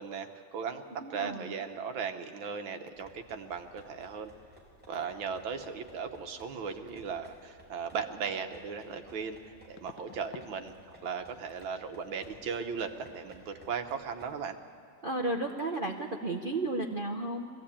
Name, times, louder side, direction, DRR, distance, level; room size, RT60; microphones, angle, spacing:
voice 1, 0.0-4.3 4.9-10.7 11.0-14.6, right 6 dB, 80° right, 7 dB, 1.8 m, -37 dB
voice 2, 1.0-1.5 15.0-17.5, right 2 dB, 50° right, 1 dB, 0.6 m, -33 dB
sound 1, 2.9-14.4, right 1 dB, 5° right, 4.3 m, -57 dB
sound 2, 9.8-10.6 10.8-11.2 11.5-11.7 14.6-14.7 15.0-15.2 15.5-15.6, left 9 dB, 75° left, 1.4 m, -52 dB
21.0 x 15.5 x 8.6 m, 2.3 s
omnidirectional pair, 2.2 m